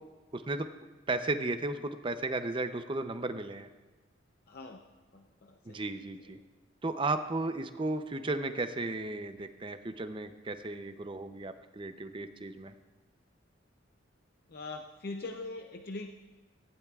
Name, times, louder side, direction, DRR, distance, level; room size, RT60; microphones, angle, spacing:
voice 1, 0.3-0.7 1.1-3.7 5.7-6.4 6.8-12.7, right 2 dB, 25° right, 9 dB, 0.6 m, -34 dB
voice 2, 4.5-4.8 5.1-5.9 6.2-6.3 14.5-16.2, left 2 dB, 50° left, 4 dB, 0.6 m, -42 dB
17.5 x 15.5 x 2.4 m, 1.2 s
head